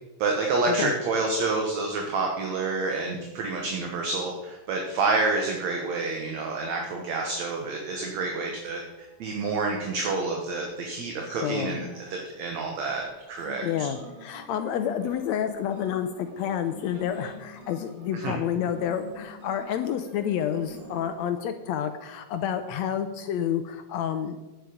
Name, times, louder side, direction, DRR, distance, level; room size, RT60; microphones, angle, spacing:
voice 1, 0.2-8.8 9.2-13.9 18.1-18.3, right 3 dB, 65° right, 1 dB, 2.4 m, -28 dB
sound 1, 7.8-12.2 13.0-21.2, left 1 dB, 50° right, 3.8 m, -46 dB
voice 2, 11.3-11.8 13.6-24.4, left 9 dB, 75° left, 9 dB, 1.7 m, -29 dB
11.0 x 9.9 x 5.0 m, 1.1 s
omnidirectional pair, 3.6 m